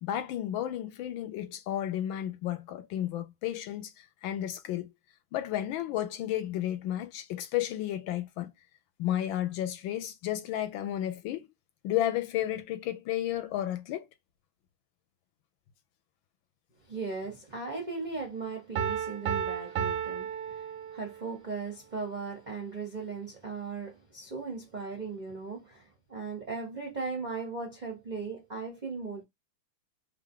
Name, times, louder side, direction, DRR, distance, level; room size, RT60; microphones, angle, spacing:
voice 1, 0.0-4.9 5.3-8.5 9.0-11.5 11.8-14.1, left 12 dB, 75° left, 1.4 m, -32 dB
voice 2, 16.9-29.2, right 4 dB, 55° right, 0.4 m, -38 dB
Piano, 18.8-21.3, right 8 dB, 75° right, 1.0 m, -33 dB
3.4 x 2.5 x 3.7 m
omnidirectional pair, 2.2 m